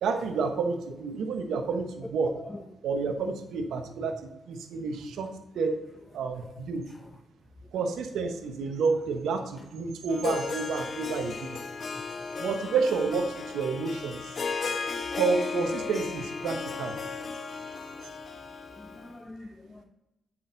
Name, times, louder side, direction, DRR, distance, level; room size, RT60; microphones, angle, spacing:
voice 1, 0.0-2.3 2.8-5.3 5.5-5.8 6.1-6.8 7.7-11.6 12.4-14.4 15.1-16.9, right 4 dB, 80° right, 6 dB, 1.0 m, -30 dB
Harp, 10.1-19.1, left 4 dB, 55° left, 0.9 m, -35 dB
voice 2, 18.7-19.8, left 1 dB, 20° left, 4 dB, 0.8 m, -45 dB
7.9 x 6.1 x 3.8 m, 0.93 s
supercardioid pair, 50°, 0 cm